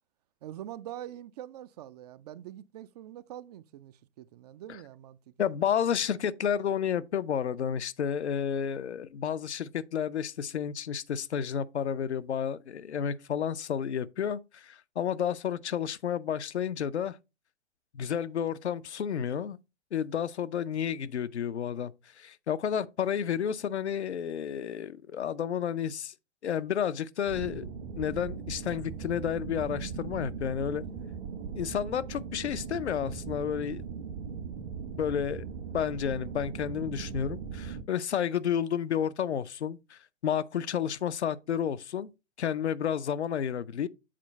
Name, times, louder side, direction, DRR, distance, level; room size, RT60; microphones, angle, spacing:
voice 1, 0.4-5.5, right 12 dB, 40° right, 0.4 m, -44 dB
voice 2, 5.4-17.2 17.9-19.6 19.9-26.1 26.4-27.7 28.0-30.8 31.5-33.9 35.0-35.4 35.7-42.1 42.4-43.9, left 8 dB, 75° left, 0.6 m, -31 dB
sound 1, 27.3-37.8, right 6 dB, 60° right, 1.3 m, -39 dB
7.5 x 4.3 x 4.0 m
figure-of-eight pair, 100°, 34 cm